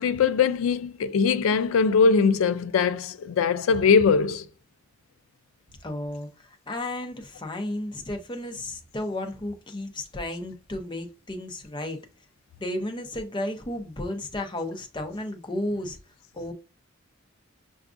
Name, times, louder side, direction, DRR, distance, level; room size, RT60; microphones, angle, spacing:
voice 1, 0.0-4.4, left 5 dB, 85° left, 0.3 m, -21 dB
voice 2, 5.8-12.0 12.6-16.0 16.3-16.5, left 1 dB, 25° left, 0.6 m, -33 dB
5.8 x 2.4 x 2.5 m
head